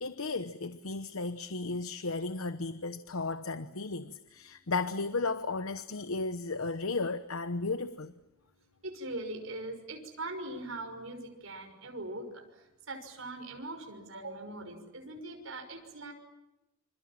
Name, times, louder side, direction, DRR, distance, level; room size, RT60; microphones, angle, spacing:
voice 1, 0.0-8.1, left 3 dB, 80° left, 1.0 m, -34 dB
voice 2, 8.8-16.1, right 2 dB, 65° right, 6.0 m, -41 dB
27.5 x 27.0 x 7.5 m
head